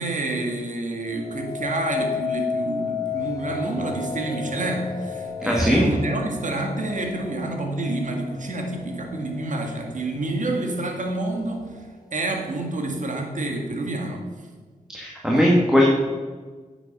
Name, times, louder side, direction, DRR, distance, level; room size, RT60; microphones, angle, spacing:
voice 1, 0.0-11.7 12.1-14.2, right 2 dB, 60° right, 2 dB, 2.0 m, -28 dB
sound 1, 1.1-10.3 10.8-11.3, left 5 dB, 25° left, 1.3 m, -33 dB
voice 2, 5.4-5.8 14.9-15.8, equal, 5° right, -3 dB, 1.9 m, -18 dB
10.0 x 7.2 x 5.5 m, 1.5 s
cardioid pair, 65°, 15 cm